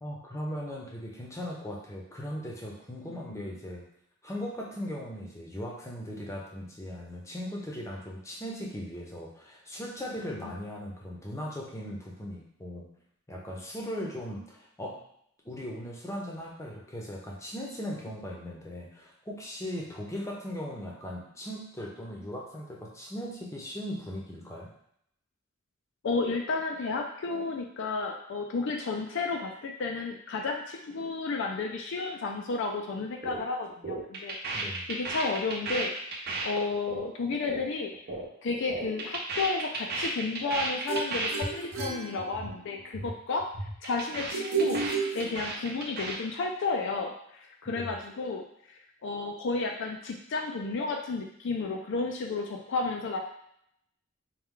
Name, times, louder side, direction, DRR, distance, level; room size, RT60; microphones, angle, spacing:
voice 1, 0.0-3.8 4.2-12.8 13.3-15.0 15.4-24.7 34.5-34.9 47.7-47.9, equal, 15° left, -2 dB, 0.7 m, -38 dB
voice 2, 3.1-3.5 10.2-10.4 26.0-35.9 36.4-37.9 38.4-43.5 43.8-44.9 45.1-48.4 49.0-53.2, left 3 dB, 60° left, 2 dB, 0.4 m, -32 dB
sound 1, 33.2-33.4 33.7-38.3 38.5-41.5 41.7-41.9 42.2-42.5 42.8-43.1 43.4-46.2, right 2 dB, 50° right, 0.7 m, -34 dB
sound 2, 40.9-42.8 44.3-45.8, right 5 dB, 90° right, 0.8 m, -32 dB
4.6 x 2.3 x 3.6 m, 0.72 s
head